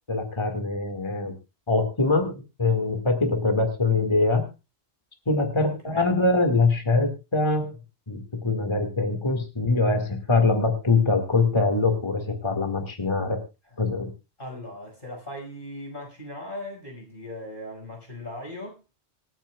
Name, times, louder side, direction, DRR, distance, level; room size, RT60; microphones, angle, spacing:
voice 1, 0.1-1.3 1.7-4.4 5.3-7.7 8.1-13.4 13.8-14.1, left 3 dB, 25° left, 4 dB, 1.9 m, -23 dB
voice 2, 5.6-6.1 13.7-13.8 14.4-18.7, left 1 dB, 50° left, 1 dB, 5.7 m, -38 dB
26.5 x 9.0 x 2.3 m, 0.27 s
omnidirectional pair, 1.2 m